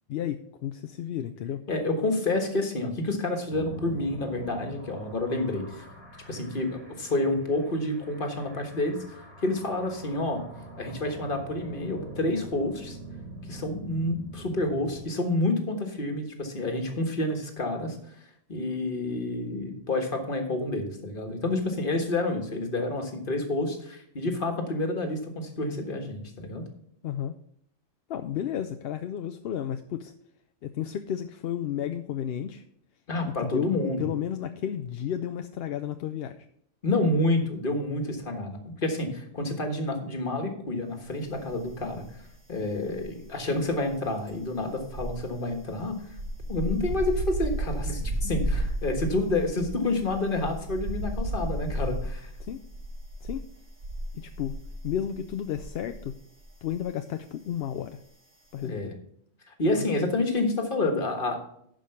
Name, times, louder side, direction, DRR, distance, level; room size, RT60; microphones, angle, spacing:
voice 1, 0.1-1.6 27.0-27.4 28.1-30.1 30.6-32.6 33.2-36.5 52.4-52.6 53.2-53.4 54.1-54.6 54.8-56.2 56.6-58.0 58.5-59.0 59.8-59.9, left 10 dB, 65° left, 8 dB, 0.7 m, -32 dB
voice 2, 1.7-5.8 6.3-10.4 10.8-13.0 13.5-18.0 18.5-26.6 33.1-34.1 36.8-42.0 42.5-46.0 46.5-52.3 58.6-58.9 59.6-61.4, left 2 dB, 45° left, 5 dB, 1.6 m, -29 dB
sound 1, 3.5-15.0, right 1 dB, 45° right, 3.7 m, -44 dB
sound 2, 41.5-42.3 42.6-56.1 56.4-56.6, right 1 dB, 90° right, 2.2 m, -33 dB
11.5 x 5.2 x 5.7 m, 0.70 s
omnidirectional pair, 1.2 m